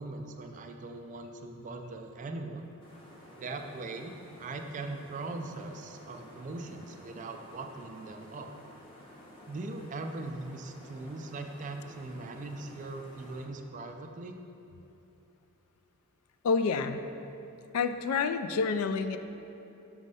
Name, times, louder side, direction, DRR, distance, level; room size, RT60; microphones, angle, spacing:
voice 1, 0.0-2.6 3.4-8.5 9.5-14.4, right 2 dB, 35° right, 5 dB, 0.3 m, -40 dB
sound 1, 2.8-13.5, left 1 dB, 25° left, 0.8 m, -52 dB
voice 2, 16.4-17.0 17.7-19.2, left 5 dB, 70° left, 10 dB, 0.3 m, -28 dB
6.3 x 3.1 x 5.3 m, 3.0 s
head